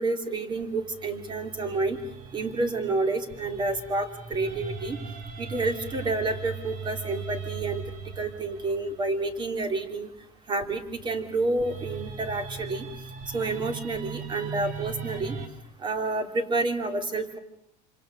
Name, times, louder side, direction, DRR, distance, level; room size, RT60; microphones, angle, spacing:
voice 1, 0.0-2.0 2.3-5.0 5.4-10.1 10.5-12.9 13.3-15.4 15.8-17.4, right 3 dB, 25° right, 7 dB, 3.2 m, -29 dB
sound 1, 0.6-9.8 10.6-15.5, right 5 dB, 45° right, 4.4 m, -40 dB
27.5 x 26.0 x 6.8 m, 0.76 s
cardioid pair, 145°, 19 cm